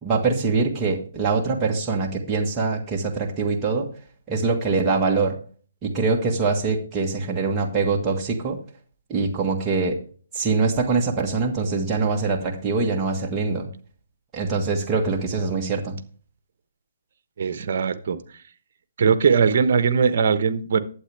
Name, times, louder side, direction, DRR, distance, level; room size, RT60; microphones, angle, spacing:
voice 1, 0.0-3.9 4.3-5.3 5.8-8.6 9.1-10.0 10.3-13.7 14.3-16.0, right 4 dB, 20° right, -1 dB, 1.6 m, -23 dB
voice 2, 17.4-18.2 19.0-20.8, right 6 dB, 55° right, 11 dB, 1.1 m, -20 dB
11.5 x 8.5 x 3.4 m, 0.42 s
hypercardioid pair, 150°, 0 cm